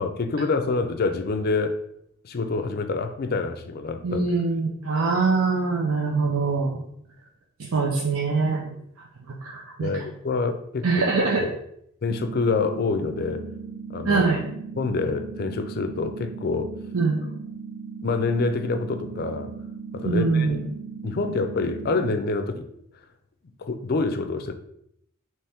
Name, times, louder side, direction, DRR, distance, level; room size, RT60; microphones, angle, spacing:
voice 1, 0.0-1.8 2.2-4.2 9.8-10.9 11.4-11.5 12.0-13.5 13.9-14.2 14.8-16.7 18.0-19.5 19.9-20.8 21.0-22.7 23.6-24.5, left 3 dB, 45° left, 9 dB, 0.4 m, -26 dB
voice 2, 4.0-6.8 7.7-8.8 9.3-10.0 10.8-11.4 14.0-14.4 16.9-17.2 20.0-20.6, right 4 dB, 80° right, -2 dB, 0.7 m, -23 dB
sound 1, 12.1-22.1, right 5 dB, 35° right, 0.4 m, -38 dB
3.5 x 3.0 x 4.3 m, 0.74 s
head